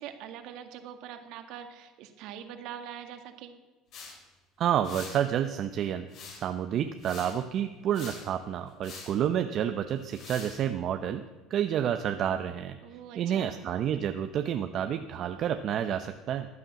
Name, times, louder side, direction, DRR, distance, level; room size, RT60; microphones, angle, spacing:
voice 1, 0.0-3.5 12.8-13.6, right 9 dB, 70° right, 7 dB, 1.9 m, -43 dB
sound 1, 3.9-4.2 4.8-5.2 6.1-6.6 7.0-7.4 7.9-8.3 8.8-9.1 10.0-10.6, left 4 dB, 60° left, 5.3 m, -45 dB
voice 2, 4.6-6.1 6.4-11.2 11.5-12.8 13.1-16.5, right 9 dB, 55° right, 8 dB, 0.8 m, -29 dB
15.0 x 9.9 x 7.6 m, 1.2 s
supercardioid pair, 95°, 0 cm